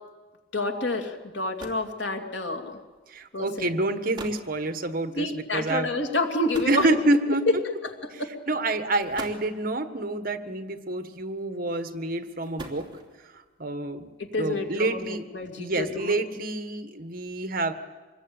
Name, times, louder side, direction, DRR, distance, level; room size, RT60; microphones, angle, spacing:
voice 1, 0.5-2.8 3.3-3.8 5.2-6.9 8.0-8.3 14.2-15.0 15.3-16.2, left 2 dB, 80° left, 4 dB, 2.8 m, -29 dB
sound 1, 1.0-1.1 1.4-2.0 3.0-3.2 3.8-3.9 4.1-4.5 6.5-7.4 8.3-8.5 9.0-9.6 10.9-11.4 12.2-13.3, right 1 dB, 25° right, 3.3 m, -41 dB
voice 2, 3.1-5.9 6.6-7.4 8.1-12.9 13.6-14.1 14.4-15.2 15.6-17.7, right 2 dB, 50° right, 9 dB, 1.6 m, -28 dB
25.5 x 21.0 x 8.9 m, 1.3 s
head